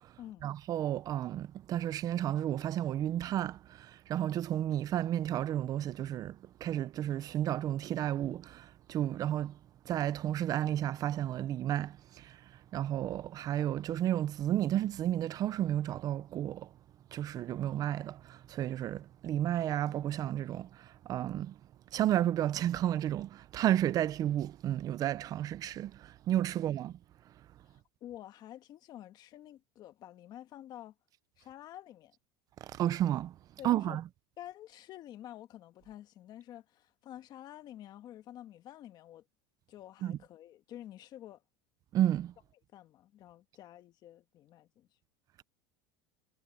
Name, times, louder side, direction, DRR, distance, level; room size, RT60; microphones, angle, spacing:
voice 1, 0.4-6.4 6.6-9.5 9.9-12.4 12.7-16.7 17.1-20.7 21.1-21.5 21.9-27.0 32.8-33.3 33.6-34.0 40.0-40.2 41.9-42.3, right 12 dB, 35° right, 0.7 m, -32 dB
voice 2, 28.0-30.9 31.4-32.1 33.6-34.0 34.4-39.2 39.7-41.4 42.7-44.9, left 12 dB, 40° left, 1.5 m, -49 dB
supercardioid pair, 145°, 11 cm